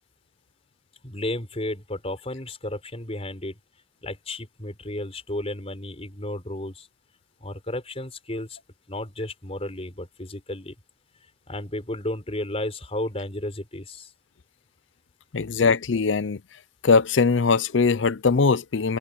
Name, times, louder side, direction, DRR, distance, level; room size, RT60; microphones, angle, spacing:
voice 1, 1.0-3.6 4.0-6.9 7.4-8.6 8.9-10.7 11.5-14.1, left 1 dB, 30° left, 4.5 m, -33 dB
voice 2, 15.3-16.4 16.8-19.0, left 4 dB, 65° left, 0.6 m, -21 dB
open air
head